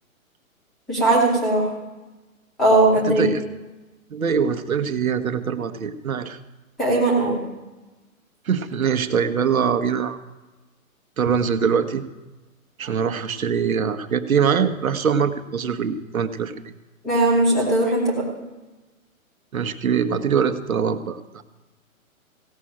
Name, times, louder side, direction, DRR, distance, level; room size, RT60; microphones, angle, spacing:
voice 1, 0.9-1.7 2.6-3.2 6.8-7.4 17.0-18.2, right 2 dB, ahead, -8 dB, 0.8 m, -18 dB
voice 2, 3.0-3.4 4.1-6.4 8.5-10.2 11.2-12.0 12.8-16.7 19.5-21.4, right 7 dB, 75° right, 9 dB, 1.3 m, -23 dB
16.5 x 6.5 x 8.7 m, 1.1 s
hypercardioid pair, 170°, 42 cm